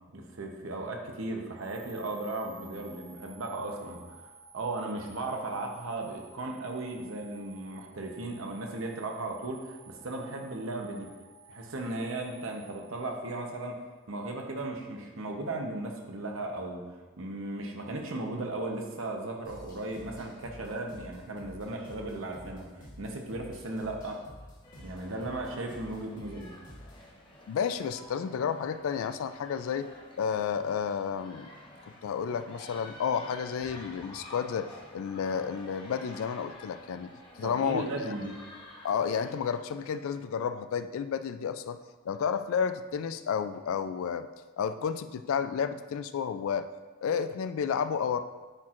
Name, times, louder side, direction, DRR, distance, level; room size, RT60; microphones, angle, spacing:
voice 1, 0.1-11.1 11.5-13.8 14.1-24.2 24.8-26.5 37.4-38.3, right 2 dB, 65° right, 2 dB, 0.8 m, -36 dB
sound 1, 1.6-13.7, right 4 dB, 25° right, 0.4 m, -54 dB
sound 2, 19.4-27.1, equal, 40° left, 1.3 m, -50 dB
sound 3, 24.6-39.3, left 1 dB, 20° left, 0.9 m, -50 dB
voice 2, 27.5-29.9 30.2-31.5 32.0-37.1 37.4-37.9 38.8-41.8 42.1-44.3 44.6-46.7 47.0-48.2, left 7 dB, 70° left, 11 dB, 0.3 m, -31 dB
9.8 x 4.4 x 2.5 m, 1.3 s
head